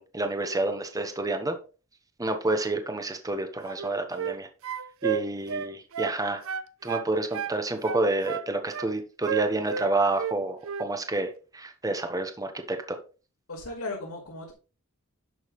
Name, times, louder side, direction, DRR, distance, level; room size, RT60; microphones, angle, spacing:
voice 1, 0.0-1.6 2.2-4.5 5.0-6.4 6.8-13.0, right 2 dB, 15° right, 7 dB, 1.2 m, -29 dB
sound 1, 3.7-4.4 4.6-6.2 6.4-7.6 7.8-8.9 9.3-10.4 10.6-10.9, right 7 dB, 65° right, 0.6 m, -32 dB
voice 2, 13.5-14.5, left 2 dB, 90° left, -8 dB, 4.2 m, -36 dB
11.0 x 6.4 x 3.2 m, 0.34 s
head